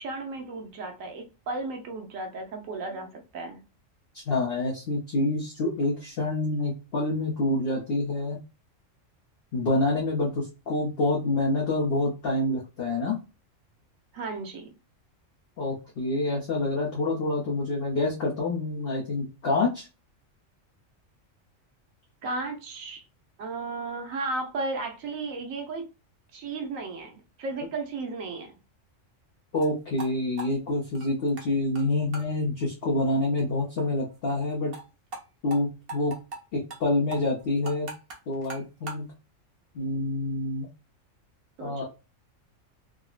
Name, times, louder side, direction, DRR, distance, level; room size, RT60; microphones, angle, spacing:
voice 1, 0.0-3.6 14.1-14.7 22.2-23.0 23.4-25.9 26.3-28.5 41.6-41.8, right 3 dB, 90° right, 1.2 m, -34 dB
voice 2, 4.1-8.4 9.5-13.2 15.6-19.9 29.5-34.7 35.4-36.2 36.5-37.9 38.3-39.1 39.7-40.7 41.6-41.8, left 2 dB, 55° left, 0.9 m, -27 dB
sound 1, 29.5-29.7 30.0-30.1 30.4-31.5 31.7-31.8 32.1-32.3 32.6-32.7 33.0-33.1 33.4-33.5 33.8-33.9 34.1-34.2 34.5-34.8 35.1-35.2 35.5-35.6 35.9-36.4 36.7-36.8 37.1-39.0, right 2 dB, 50° right, 1.0 m, -39 dB
3.6 x 2.0 x 2.4 m
omnidirectional pair, 1.3 m